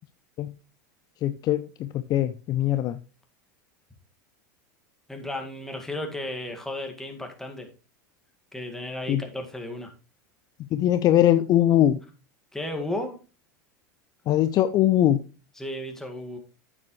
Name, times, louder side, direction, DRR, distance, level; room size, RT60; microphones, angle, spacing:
voice 1, 1.2-3.0 9.1-9.2 10.7-12.0 14.3-15.2, left 12 dB, 40° left, 0.5 m, -21 dB
voice 2, 5.1-7.7 8.5-9.9 12.5-13.2 15.6-16.4, left 1 dB, 5° left, 1.9 m, -34 dB
9.2 x 7.6 x 3.1 m
supercardioid pair, 115°, 10 cm